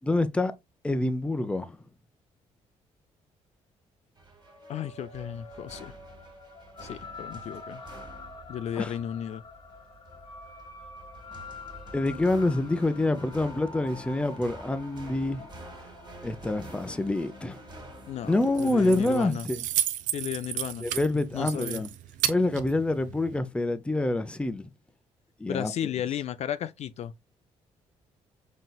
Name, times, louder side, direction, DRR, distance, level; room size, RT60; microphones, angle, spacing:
voice 1, 0.0-0.5 0.8-1.8 8.8-8.9 11.9-15.5 16.2-17.6 18.2-19.6 20.8-21.9 22.3-24.7 25.4-25.7, left 2 dB, 10° left, 0.5 m, -26 dB
sound 1, 4.2-19.1, right 1 dB, 35° right, 1.4 m, -48 dB
sound 2, 4.4-19.1, left 3 dB, 40° left, 0.9 m, -47 dB
voice 2, 4.7-5.9 6.8-7.8 8.5-9.4 18.1-19.5 20.1-20.8 21.3-21.8 25.5-27.1, left 10 dB, 60° left, 0.4 m, -34 dB
Keys jangling, 18.3-23.4, right 11 dB, 85° right, 0.4 m, -33 dB
4.1 x 3.8 x 2.2 m
cardioid pair, 90°, 13 cm